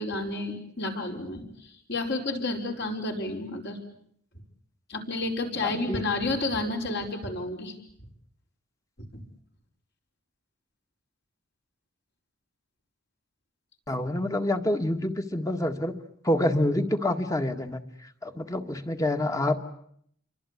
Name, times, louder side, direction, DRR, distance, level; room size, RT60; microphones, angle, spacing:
voice 1, 0.0-3.8 4.9-7.7, left 2 dB, 55° left, 2 dB, 5.2 m, -31 dB
voice 2, 5.6-6.0 13.9-16.0 16.2-19.6, left 1 dB, 15° left, 7 dB, 1.8 m, -27 dB
28.5 x 24.0 x 8.5 m, 0.68 s
head